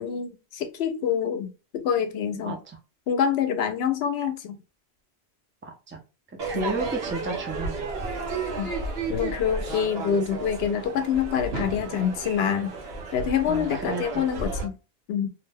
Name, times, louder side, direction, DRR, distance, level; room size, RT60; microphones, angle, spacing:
voice 1, 0.0-2.6 3.1-4.6 6.5-6.6 8.6-8.7 9.1-12.7 13.1-14.7 15.1-15.3, left 8 dB, 75° left, 0.8 m, -26 dB
voice 2, 5.6-6.0 6.4-7.9 8.1-8.2 13.5-14.2, right 3 dB, 20° right, 0.4 m, -32 dB
Crowd / Fireworks, 6.4-14.6, right 3 dB, 70° right, 1.0 m, -33 dB
2.6 x 2.2 x 3.3 m
omnidirectional pair, 1.1 m